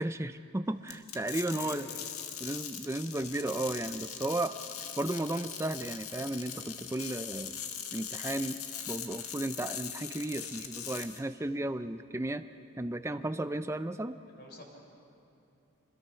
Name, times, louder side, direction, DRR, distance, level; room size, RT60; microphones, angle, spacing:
voice 1, 0.0-1.9 2.4-4.5 5.0-7.6 7.9-8.6 8.9-12.4 12.8-14.2, right 1 dB, 10° right, 10 dB, 0.4 m, -34 dB
sound 1, 0.9-11.2, left 8 dB, 75° left, 1.6 m, -41 dB
voice 2, 1.5-2.1 14.4-14.6, left 1 dB, 45° left, 0 dB, 3.9 m, -47 dB
25.5 x 21.0 x 5.7 m, 2.8 s
head